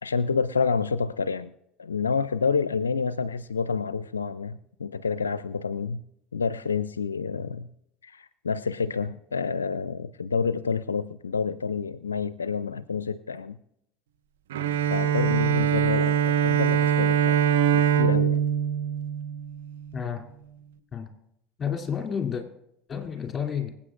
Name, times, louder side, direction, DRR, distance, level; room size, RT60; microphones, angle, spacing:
voice 1, 0.0-1.5 1.8-6.0 6.3-7.7 8.0-13.6 14.9-17.4 17.7-18.4, left 5 dB, 90° left, 15 dB, 0.4 m, -28 dB
Bowed string instrument, 14.5-19.9, right 9 dB, 75° right, 0.8 m, -23 dB
voice 2, 19.9-20.3 20.9-21.1 21.6-22.4 22.9-23.7, left 7 dB, 25° left, 4 dB, 2.8 m, -30 dB
25.5 x 8.5 x 2.5 m, 0.75 s
hypercardioid pair, 75°, 0 cm